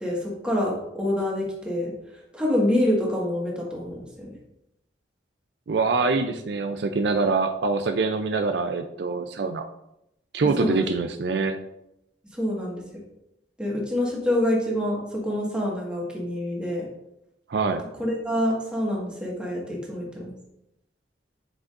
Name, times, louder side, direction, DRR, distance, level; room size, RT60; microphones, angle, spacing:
voice 1, 0.0-1.9 2.3-4.3 10.6-10.8 12.3-12.8 13.6-16.8 18.0-20.3, left 1 dB, 5° right, -4 dB, 1.7 m, -26 dB
voice 2, 5.7-9.6 10.3-11.6 17.5-17.8, right 4 dB, 65° right, 6 dB, 0.4 m, -24 dB
8.0 x 5.8 x 2.5 m, 0.84 s
head